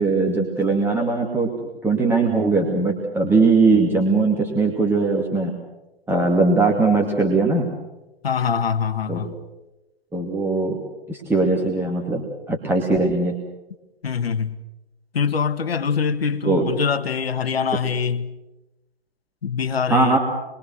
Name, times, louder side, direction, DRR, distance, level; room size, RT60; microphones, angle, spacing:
voice 1, 0.0-1.5 1.8-5.5 6.1-7.6 9.1-9.3 10.1-10.8 11.1-13.3 16.5-16.7 19.9-20.2, right 3 dB, 5° right, 2.5 m, -20 dB
voice 2, 8.2-9.3 14.0-14.6 15.1-18.3 19.4-20.2, left 6 dB, 65° left, 1.7 m, -23 dB
27.0 x 23.0 x 6.5 m
figure-of-eight pair, 120°, 32 cm